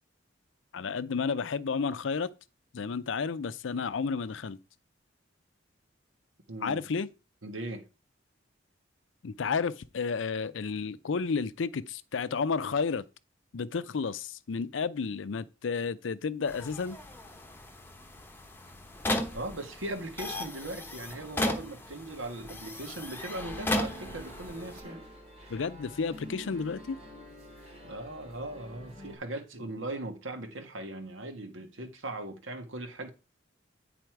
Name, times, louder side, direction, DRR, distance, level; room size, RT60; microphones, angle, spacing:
voice 1, 0.7-2.3 2.7-4.6 6.6-7.1 9.2-13.0 13.5-17.0 25.5-27.0, left 5 dB, 75° left, 0.5 m, -31 dB
voice 2, 6.5-6.8 7.4-7.9 19.3-25.0 27.8-33.1, right 2 dB, 90° right, 1.5 m, -39 dB
sound 1, 16.5-24.8, left 1 dB, 10° left, 1.1 m, -36 dB
sound 2, 23.4-29.2, equal, 35° right, 2.8 m, -47 dB
9.2 x 4.1 x 4.6 m
head